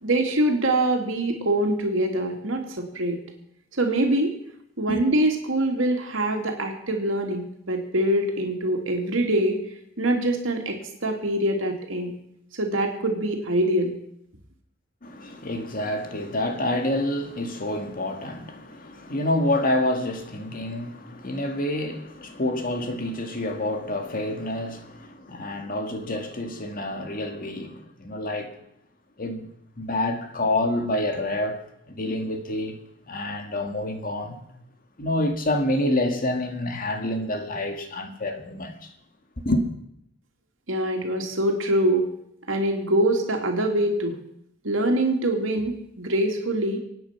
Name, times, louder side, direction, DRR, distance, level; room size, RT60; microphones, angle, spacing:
voice 1, 0.0-3.2 3.7-4.3 4.8-9.6 10.0-10.8 11.0-12.1 12.6-13.9 40.7-42.1 42.5-44.2 44.6-46.8, right 1 dB, 80° right, 2.7 m, -24 dB
voice 2, 15.0-28.6 29.2-29.5 29.8-31.6 31.9-32.8 33.1-34.4 35.0-38.9 39.5-39.6, left 1 dB, 45° left, 2.0 m, -28 dB
25.0 x 9.1 x 5.9 m
head